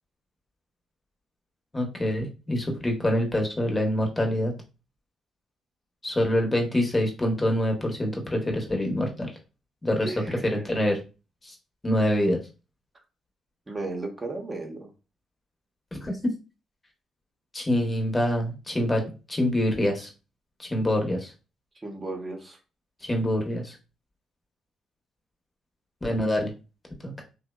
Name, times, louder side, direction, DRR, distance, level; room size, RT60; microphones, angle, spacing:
voice 1, 1.7-4.5 6.0-9.3 9.8-10.1 10.4-11.0 11.4-11.5 11.8-12.4 16.0-16.2 17.5-19.0 19.3-20.1 20.6-21.3 23.0-23.8 26.0-26.5 27.0-27.1, left 1 dB, 25° left, 1 dB, 0.9 m, -25 dB
voice 2, 10.0-10.6 13.7-14.9 21.8-22.6, right 2 dB, 30° right, 2 dB, 0.7 m, -35 dB
2.6 x 2.1 x 2.2 m, 0.31 s
supercardioid pair, 60°, 0 cm